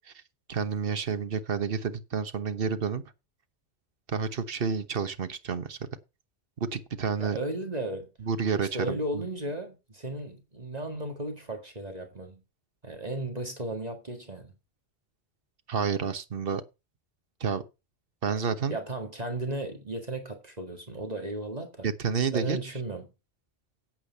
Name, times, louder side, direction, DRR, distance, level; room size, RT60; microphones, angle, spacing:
voice 1, 0.5-3.0 4.1-5.8 6.6-7.4 8.2-9.3 15.7-16.6 17.4-17.6 18.2-18.8 21.8-22.6, right 6 dB, 60° right, 1.3 m, -29 dB
voice 2, 7.2-8.1 8.7-12.4 12.8-14.5 18.7-21.9 22.3-23.1, right 1 dB, 35° right, 2.0 m, -35 dB
8.9 x 8.4 x 5.5 m
omnidirectional pair, 1.1 m